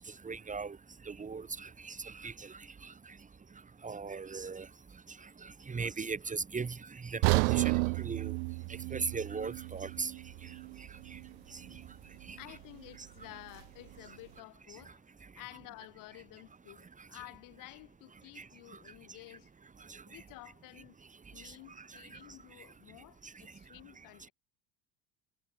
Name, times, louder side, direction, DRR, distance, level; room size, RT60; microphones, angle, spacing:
voice 1, 0.2-0.8 1.1-2.5 2.8-2.9 3.8-4.7 5.7-8.3 8.9-10.1 11.1-11.2 11.5-11.6 12.3-12.6 18.4-18.5 19.9-20.0, right 4 dB, 20° right, 2.3 m, -38 dB
sound 1, 7.2-11.3 11.6-11.8 12.4-12.5, right 35 dB, 80° right, 1.4 m, -32 dB
voice 2, 12.3-19.5 20.0-21.0 21.3-24.3, left 21 dB, 65° left, 6.9 m, -52 dB
supercardioid pair, 100°, 35 cm